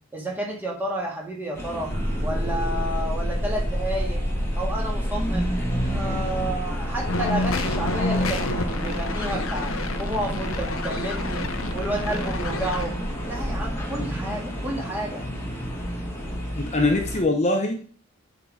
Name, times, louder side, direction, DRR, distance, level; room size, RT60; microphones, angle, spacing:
voice 1, 0.0-1.9 2.2-4.2 4.6-5.5 5.9-9.7 10.0-11.5 11.7-12.9 13.3-15.2, right 1 dB, 10° right, -2 dB, 1.8 m, -31 dB
sound 1, 1.5-17.2, equal, 10° left, 1.5 m, -32 dB
sound 2, 1.9-13.8, equal, 40° right, 3.5 m, -30 dB
sound 3, 7.1-12.8, left 2 dB, 80° left, 0.9 m, -29 dB
voice 2, 16.6-17.8, left 2 dB, 30° left, 3 dB, 0.8 m, -22 dB
7.9 x 4.0 x 4.7 m, 0.43 s
head